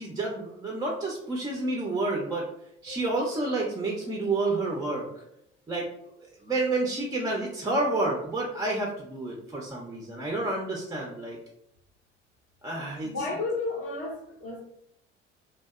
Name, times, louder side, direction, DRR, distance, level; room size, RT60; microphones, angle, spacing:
voice 1, 0.0-2.5 2.8-5.2 5.7-5.9 6.2-11.4 12.6-13.1, right 2 dB, 10° right, -1 dB, 0.3 m, -29 dB
Keyboard (musical), 2.9-5.6, equal, 80° left, 0.6 m, -54 dB
voice 2, 13.0-14.6, left 3 dB, 40° left, -1 dB, 0.5 m, -32 dB
2.6 x 2.2 x 2.3 m, 0.76 s
figure-of-eight pair, 55°, 35 cm